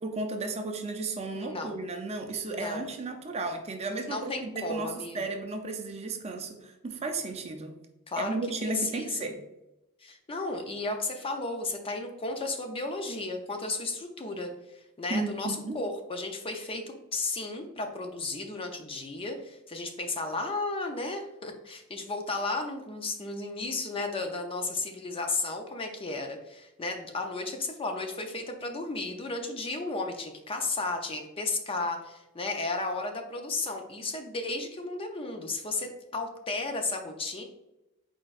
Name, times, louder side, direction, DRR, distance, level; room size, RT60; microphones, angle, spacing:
voice 1, 0.0-7.8 8.2-9.4 15.1-15.8, right 3 dB, 30° right, 5 dB, 0.5 m, -34 dB
voice 2, 1.3-1.8 2.5-2.9 4.1-5.3 8.1-9.3 10.0-37.4, left 3 dB, 25° left, 4 dB, 0.5 m, -34 dB
4.4 x 4.3 x 2.4 m, 0.94 s
head